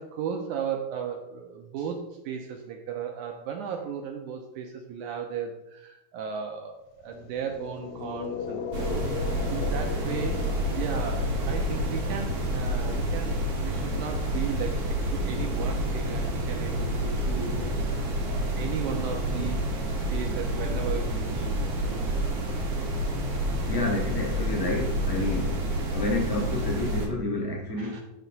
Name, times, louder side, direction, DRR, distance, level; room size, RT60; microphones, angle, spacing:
voice 1, 0.0-13.3 13.6-19.6 20.1-21.6 27.8-28.0, right 7 dB, 80° right, 3 dB, 1.9 m, -35 dB
sound 1, 7.0-15.1, left 6 dB, 80° left, 1.7 m, -39 dB
sound 2, 8.7-27.1, right 1 dB, 55° right, 1.9 m, -29 dB
voice 2, 23.7-25.6 25.9-28.0, left 2 dB, 5° right, -4 dB, 1.1 m, -29 dB
6.4 x 5.8 x 4.0 m, 0.89 s
omnidirectional pair, 3.9 m